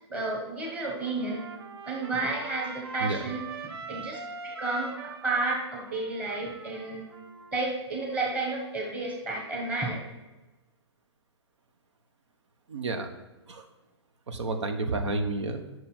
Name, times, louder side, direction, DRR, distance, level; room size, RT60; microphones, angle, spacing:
voice 1, 0.1-1.4 1.8-3.4 3.9-7.0 7.5-10.0, right 2 dB, 10° right, -2 dB, 1.2 m, -31 dB
Trumpet, 1.0-7.7, right 4 dB, 65° right, 1.0 m, -43 dB
voice 2, 12.7-13.1 13.5-13.7 14.3-15.6, right 2 dB, 85° right, 6 dB, 1.3 m, -30 dB
9.4 x 6.4 x 4.5 m, 1.1 s
hypercardioid pair, 175°, 15 cm